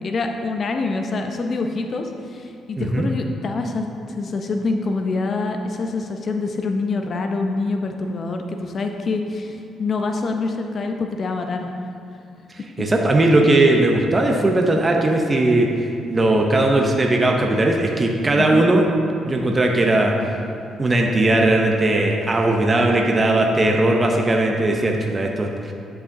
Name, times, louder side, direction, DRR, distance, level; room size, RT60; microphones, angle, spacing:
voice 1, 0.0-11.7 12.8-12.9 18.4-18.7, left 3 dB, 50° left, 4 dB, 0.5 m, -26 dB
voice 2, 2.8-3.1 12.8-15.7 16.1-18.9 19.3-20.1 20.8-25.7, right 2 dB, 25° right, 1 dB, 0.6 m, -18 dB
11.0 x 4.7 x 2.7 m, 2.5 s
cardioid pair, 90°, 0 cm